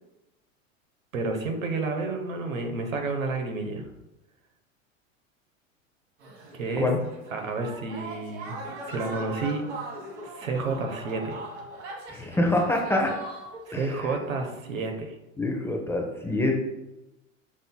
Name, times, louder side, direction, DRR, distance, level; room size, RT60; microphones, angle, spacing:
voice 1, 1.1-3.8 6.5-6.9 7.3-8.6 8.9-9.6 10.2-11.4 13.7-15.1, right 3 dB, 80° right, 3 dB, 1.0 m, -30 dB
sound 1, 6.2-13.8 14.2-14.8, right 2 dB, 60° right, 1.5 m, -40 dB
voice 2, 12.1-13.2 13.7-14.1 15.4-16.6, left 2 dB, 5° left, 0 dB, 0.5 m, -26 dB
6.2 x 3.8 x 2.2 m, 0.97 s
figure-of-eight pair, 85°, 39 cm